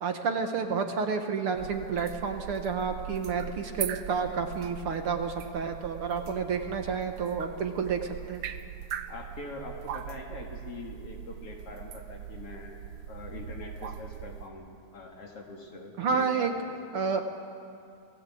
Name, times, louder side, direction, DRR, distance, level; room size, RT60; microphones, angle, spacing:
voice 1, 0.0-8.4 16.0-16.5 16.9-17.2, right 5 dB, 55° right, 5 dB, 1.8 m, -30 dB
sound 1, 1.6-14.5, right 9 dB, 75° right, 1.3 m, -41 dB
voice 2, 9.1-16.7, left 2 dB, 50° left, 1 dB, 2.9 m, -43 dB
28.5 x 17.5 x 8.5 m, 2.4 s
omnidirectional pair, 3.4 m